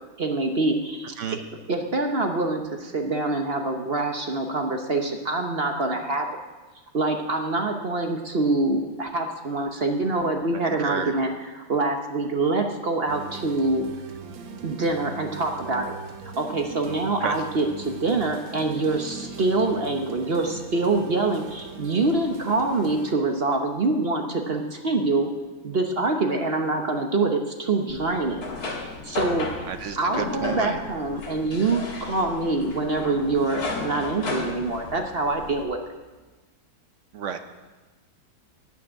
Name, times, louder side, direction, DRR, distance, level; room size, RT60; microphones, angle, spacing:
voice 1, 0.2-1.1 1.7-6.3 6.9-13.8 14.6-16.0 16.2-25.3 25.6-28.4 29.0-29.5 30.0-35.8, right 3 dB, 45° right, 4 dB, 0.9 m, -25 dB
voice 2, 10.7-11.1 17.2-17.3 29.7-30.8 37.1-37.4, right 7 dB, 75° right, 9 dB, 0.7 m, -31 dB
sound 1, 13.1-23.2, right 5 dB, 90° right, 1.8 m, -40 dB
sound 2, 27.9-35.6, left 3 dB, 55° left, 2.2 m, -34 dB
13.5 x 6.1 x 9.6 m, 1.2 s
omnidirectional pair, 2.1 m